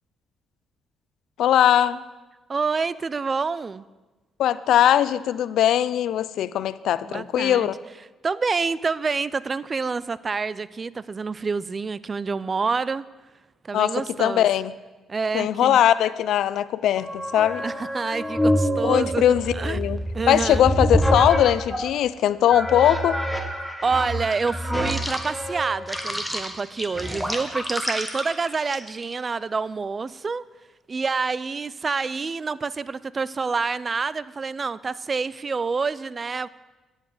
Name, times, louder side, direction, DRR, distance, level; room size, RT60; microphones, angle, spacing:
voice 1, 1.4-2.0 4.4-7.7 13.7-14.7 15.3-17.6 18.8-20.0 20.3-23.2, left 11 dB, 80° left, 16 dB, 0.3 m, -20 dB
voice 2, 2.5-3.8 7.1-7.7 8.2-13.1 13.6-14.5 15.1-15.8 17.6-19.2 19.5-19.8 20.1-20.7 23.8-30.4 30.9-36.5, right 4 dB, 35° right, 18 dB, 0.3 m, -27 dB
sound 1, 17.0-21.9 22.5-29.1, equal, 5° right, 1.2 m, -27 dB
10.0 x 8.1 x 4.9 m, 1.2 s
cardioid pair, 90°, 0 cm